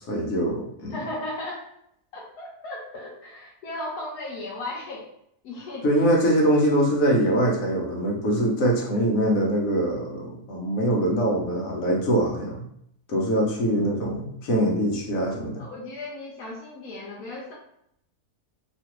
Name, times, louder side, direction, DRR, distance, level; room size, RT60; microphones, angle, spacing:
voice 1, 0.0-1.0 5.8-12.6 13.1-15.7, right 1 dB, 65° left, -1 dB, 1.1 m, -23 dB
voice 2, 0.9-1.6 2.1-5.1 5.4-5.9 15.6-17.5, left 2 dB, 90° left, -5 dB, 1.1 m, -36 dB
2.9 x 2.5 x 2.9 m, 0.73 s
omnidirectional pair, 1.6 m